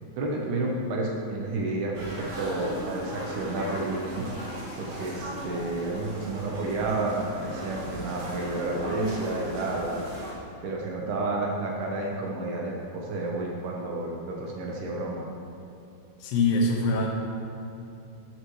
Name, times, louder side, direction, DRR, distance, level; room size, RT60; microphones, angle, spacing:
voice 1, 0.0-4.3 4.8-10.1 10.6-15.3, right 2 dB, 75° right, -1 dB, 2.5 m, -31 dB
sound 1, 1.9-10.3, right 1 dB, 45° right, 2.1 m, -37 dB
voice 2, 16.2-17.1, left 2 dB, 75° left, -1 dB, 3.1 m, -23 dB
12.5 x 6.5 x 3.1 m, 2.7 s
omnidirectional pair, 5.1 m